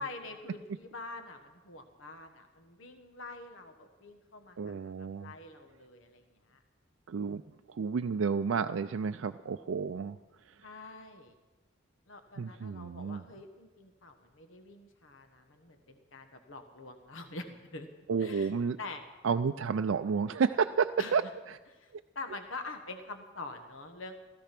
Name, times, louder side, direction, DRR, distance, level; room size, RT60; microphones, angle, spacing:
voice 1, 0.0-6.6 10.6-11.3 12.1-17.9 18.2-18.5 18.8-19.0 21.0-21.3 21.7-24.1, left 3 dB, 80° left, 6 dB, 1.3 m, -45 dB
voice 2, 4.6-5.3 7.1-7.4 7.8-10.2 12.4-13.2 18.1-18.8 19.2-21.2, right 5 dB, 75° right, 7 dB, 0.4 m, -30 dB
16.5 x 14.0 x 5.9 m, 1.2 s
head